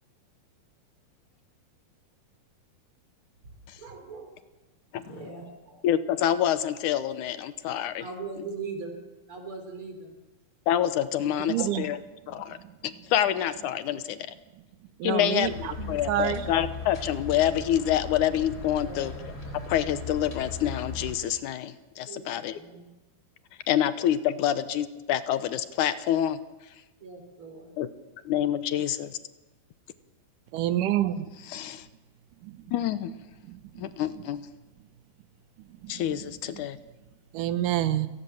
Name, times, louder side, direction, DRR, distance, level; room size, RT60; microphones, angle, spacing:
voice 1, 3.8-4.4 5.0-5.8 8.0-9.0 9.3-10.1 18.8-19.1 22.1-22.9 27.0-27.7, right 4 dB, 40° right, 5 dB, 4.7 m, -40 dB
voice 2, 5.8-8.1 10.7-12.0 12.3-12.6 12.8-14.3 15.0-22.6 23.7-26.4 27.8-27.9 28.3-29.2 31.4-31.9 32.7-33.1 33.8-34.5 35.9-36.8, left 11 dB, 80° left, 13 dB, 2.4 m, -27 dB
voice 3, 11.5-11.9 15.0-15.5 16.1-16.5 30.5-31.3 32.4-32.5 33.5-33.6 35.8-36.0 37.3-38.1, right 12 dB, 90° right, 13 dB, 2.6 m, -27 dB
sound 1, 15.4-21.1, left 4 dB, 30° left, 4.0 m, -38 dB
29.0 x 18.0 x 7.2 m, 1.1 s
omnidirectional pair, 3.6 m